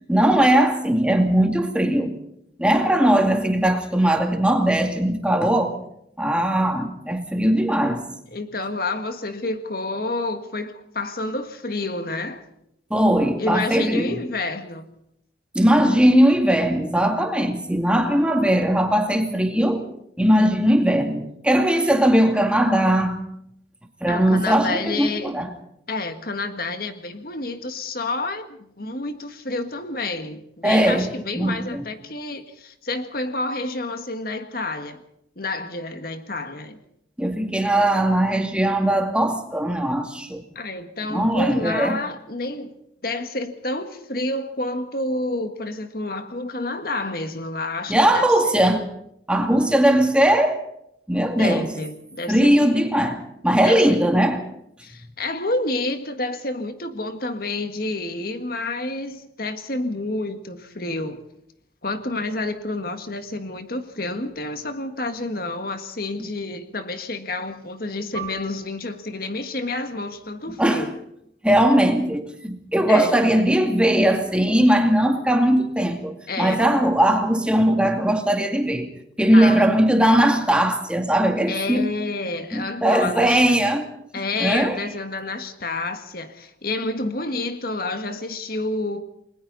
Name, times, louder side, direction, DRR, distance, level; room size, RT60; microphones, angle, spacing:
voice 1, 0.1-2.2 2.6-5.8 6.2-8.1 12.9-14.2 15.5-19.9 20.2-23.2 24.0-25.5 30.6-31.1 31.3-31.8 37.2-40.4 41.1-42.0 47.9-48.9 49.3-50.6 51.1-51.7 52.3-54.4 70.6-70.9 71.4-78.9 79.2-81.9 82.5-83.8 84.4-84.8, right 1 dB, 5° right, 2.3 m, -19 dB
voice 2, 8.3-12.5 13.4-14.9 24.1-25.3 25.9-35.0 35.4-36.8 40.6-42.7 43.0-48.6 51.4-52.5 53.6-53.8 54.8-61.2 61.8-70.9 72.9-73.2 76.3-76.6 79.3-79.7 81.5-83.4 84.1-89.0, left 2 dB, 55° left, 1.7 m, -29 dB
Piano, 68.1-73.2 73.5-73.7 74.4-74.8, right 6 dB, 25° left, 6.1 m, -42 dB
29.5 x 21.5 x 4.1 m
head